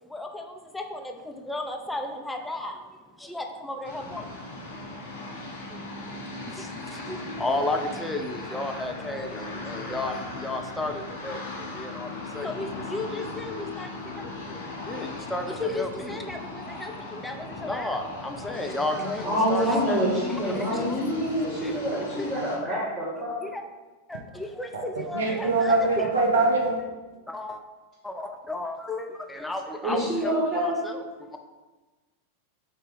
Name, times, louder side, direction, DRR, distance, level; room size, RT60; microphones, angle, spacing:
voice 1, 0.0-4.4 4.9-20.0 20.3-22.3 23.4-23.6 24.1-26.1 27.3-27.6 28.0-31.4, left 2 dB, 5° left, 4 dB, 0.3 m, -34 dB
sound 1, 3.8-22.6, left 2 dB, 55° left, 0.6 m, -38 dB
voice 2, 19.0-23.4 29.8-30.8, equal, 15° right, -10 dB, 1.1 m, -26 dB
voice 3, 25.1-26.8, right 3 dB, 70° right, -1 dB, 0.6 m, -22 dB
3.6 x 2.7 x 3.8 m, 1.2 s
figure-of-eight pair, 90°, 0 cm